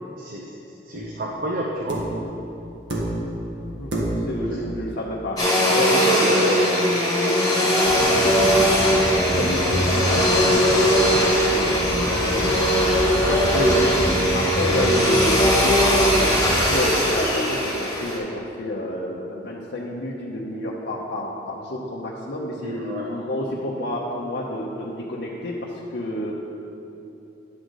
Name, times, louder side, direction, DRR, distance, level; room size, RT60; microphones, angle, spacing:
voice 1, 0.2-0.5 0.9-2.0 4.3-4.6 5.9-6.5 8.1-8.6 22.6-23.1, right 1 dB, 50° right, -1 dB, 0.7 m, -30 dB
sound 1, 0.9-1.2 1.9-2.3 2.9-3.4 3.9-4.4 5.8-5.9, right 1 dB, 80° right, 1.4 m, -28 dB
voice 2, 3.6-3.9 4.3-6.7 9.3-26.3, left 1 dB, 65° left, -4 dB, 0.7 m, -29 dB
Domestic sounds home sounds, 5.4-18.2, equal, 20° left, 1.7 m, -20 dB
sound 2, 7.8-16.8, equal, 10° right, 1.5 m, -29 dB
10.5 x 3.9 x 6.3 m, 2.9 s
head